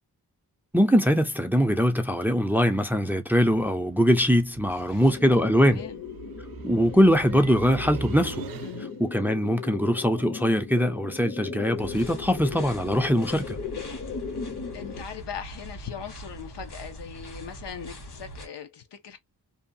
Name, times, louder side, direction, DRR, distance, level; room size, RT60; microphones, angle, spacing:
voice 1, 0.7-5.8 6.6-8.4 9.0-13.6, equal, 5° right, 0.4 m, -22 dB
sound 1, 3.9-9.1, right 6 dB, 60° right, 0.5 m, -41 dB
sound 2, 5.0-15.0, left 6 dB, 45° left, 0.6 m, -37 dB
voice 2, 5.4-6.0 8.6-8.9 14.7-19.2, left 8 dB, 90° left, 0.7 m, -40 dB
sound 3, 11.8-18.5, right 1 dB, 70° left, 1.4 m, -42 dB
2.7 x 2.2 x 2.6 m
wide cardioid pair, 90°, 40 cm